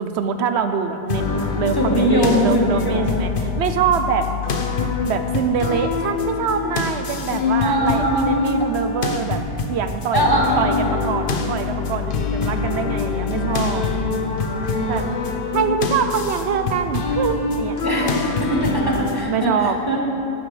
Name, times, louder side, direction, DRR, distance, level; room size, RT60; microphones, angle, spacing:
voice 1, 0.0-4.3 5.1-9.4 9.7-10.3 10.6-13.9 14.9-15.1 15.5-18.2 19.2-19.8, right 7 dB, 80° right, 8 dB, 0.9 m, -24 dB
sound 1, 1.1-19.2, left 4 dB, 55° left, 0.9 m, -24 dB
voice 2, 1.8-3.1 7.6-8.2 10.1-11.0 17.8-19.5 19.9-20.0, equal, 20° left, -2 dB, 1.3 m, -21 dB
12.5 x 11.0 x 3.3 m, 2.7 s
omnidirectional pair, 1.1 m